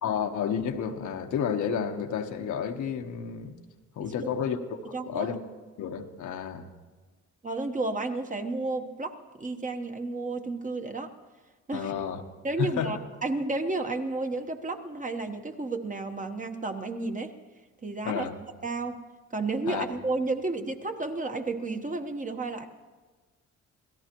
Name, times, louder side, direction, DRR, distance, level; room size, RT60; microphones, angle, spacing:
voice 1, 0.0-3.6 4.0-5.4 5.8-6.7 11.7-12.2 12.6-12.9 18.0-18.4 19.7-19.8, left 7 dB, 75° left, 5 dB, 1.2 m, -31 dB
voice 2, 4.0-4.3 4.9-5.3 7.4-11.1 11.7-11.9 12.4-17.3 17.8-18.3 18.6-19.0 19.3-22.7, right 3 dB, 25° right, 5 dB, 1.2 m, -32 dB
27.0 x 17.0 x 3.0 m, 1.4 s
cardioid pair, 90°, 30 cm